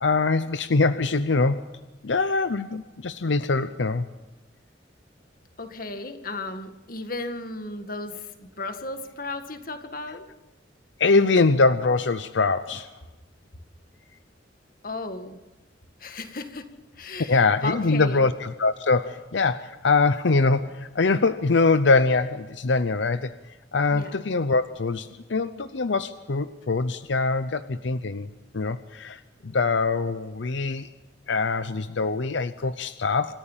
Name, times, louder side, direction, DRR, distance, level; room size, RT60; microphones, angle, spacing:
voice 1, 0.0-1.7 2.0-4.0 11.0-12.9 17.3-23.3 23.7-28.3 28.5-30.9 31.3-33.3, left 3 dB, 85° left, 12 dB, 0.7 m, -23 dB
voice 2, 5.6-10.3 14.8-15.4 16.0-16.7 16.9-18.3 23.9-24.2, left 2 dB, 50° left, 7 dB, 1.9 m, -35 dB
26.5 x 14.0 x 7.4 m, 1.1 s
head